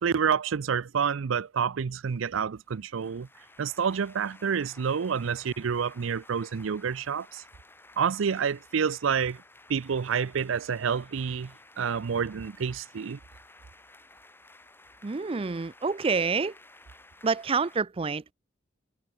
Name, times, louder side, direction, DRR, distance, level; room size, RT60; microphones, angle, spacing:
voice 1, 0.0-3.3 3.6-7.4 8.0-9.4 9.7-13.2, right 6 dB, 85° right, 0.5 m, -28 dB
sound 1, 2.6-17.8, left 2 dB, 10° left, 6.6 m, -54 dB
voice 2, 15.0-16.5 17.2-18.3, right 4 dB, 30° right, 0.5 m, -28 dB
head